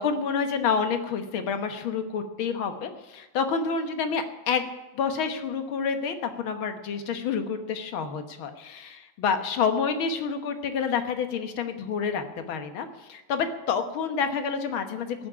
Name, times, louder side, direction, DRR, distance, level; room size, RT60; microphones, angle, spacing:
voice 1, 0.0-4.7 4.9-15.3, left 6 dB, 85° left, 7 dB, 2.1 m, -28 dB
14.5 x 7.3 x 9.6 m, 1.1 s
omnidirectional pair, 2.2 m